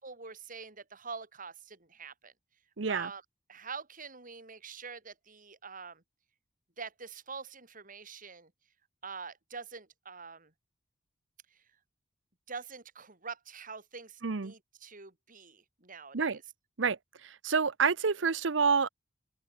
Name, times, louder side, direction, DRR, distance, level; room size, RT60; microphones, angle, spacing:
voice 1, 0.0-2.3 2.9-3.2 3.5-6.0 6.8-8.5 9.0-10.5 11.5-11.6 12.5-16.4, right 5 dB, 45° right, 5.4 m, -45 dB
voice 2, 2.8-3.1 14.2-14.5 16.1-16.4 16.8-18.9, right 5 dB, 70° right, 0.8 m, -28 dB
head